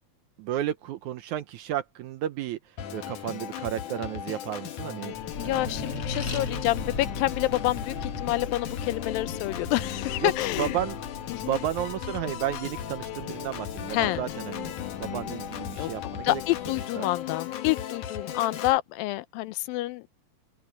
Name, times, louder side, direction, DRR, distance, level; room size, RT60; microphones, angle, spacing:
voice 1, 0.4-5.9 10.2-10.3 10.6-11.0 11.4-16.4 17.0-17.1, right 11 dB, 75° right, 1.9 m, -33 dB
Organ, 2.8-18.8, left 10 dB, 65° left, 2.7 m, -37 dB
Accelerating revving vroom, 5.1-16.0, left 4 dB, 40° left, 3.0 m, -38 dB
voice 2, 5.4-10.8 11.3-11.6 13.9-14.2 15.8-15.9 16.2-20.1, left 18 dB, 90° left, 2.5 m, -28 dB
omnidirectional pair, 4.0 m